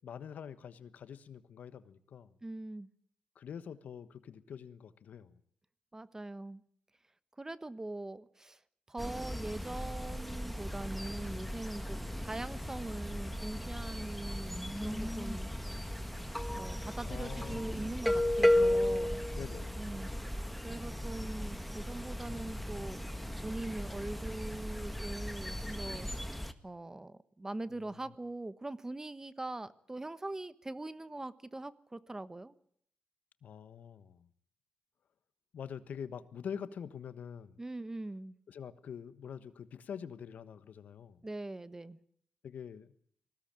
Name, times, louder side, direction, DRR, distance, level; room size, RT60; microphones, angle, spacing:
voice 1, 0.0-2.3 3.3-5.4 17.0-17.7 19.3-19.8 33.4-34.3 35.5-37.6 38.5-41.2 42.4-42.9, left 7 dB, 70° left, 13 dB, 1.3 m, -45 dB
voice 2, 2.4-2.9 5.9-6.6 7.4-8.6 8.9-15.5 16.5-19.2 19.8-20.1 20.6-23.0 23.4-26.1 26.6-32.5 37.6-38.4 41.2-42.0, right 2 dB, 20° right, 14 dB, 1.2 m, -42 dB
sound 1, 9.0-26.5, left 1 dB, ahead, 1.8 m, -35 dB
20.0 x 16.5 x 8.9 m, 0.64 s
cardioid pair, 70°, 3 cm